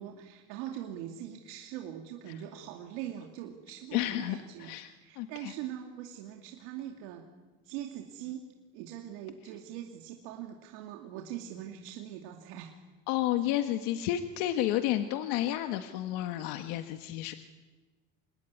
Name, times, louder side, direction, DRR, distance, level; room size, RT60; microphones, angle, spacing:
voice 1, 0.0-4.7 5.0-7.2 7.6-8.5 8.7-12.7, right 11 dB, 85° right, 2 dB, 2.5 m, -42 dB
voice 2, 3.9-5.5 13.1-17.3, left 13 dB, 80° left, 7 dB, 1.5 m, -31 dB
27.0 x 20.5 x 9.7 m, 1.3 s
supercardioid pair, 115°, 30 cm